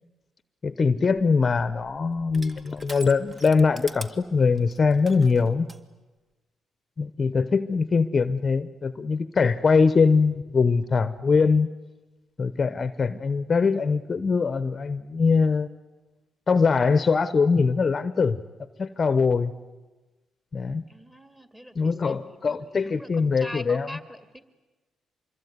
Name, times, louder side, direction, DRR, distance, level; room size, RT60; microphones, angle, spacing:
voice 1, 0.6-5.7 7.0-11.7 12.4-15.7 16.5-18.4 18.8-19.5 20.5-20.8 21.8-23.9, left 4 dB, 35° left, 13 dB, 0.9 m, -22 dB
Crushing, 0.9-5.8, right 1 dB, 30° right, 1.8 m, -45 dB
voice 2, 20.9-24.4, equal, 10° right, 8 dB, 2.5 m, -43 dB
25.5 x 22.0 x 9.5 m, 1.2 s
cardioid pair, 90°, 0 cm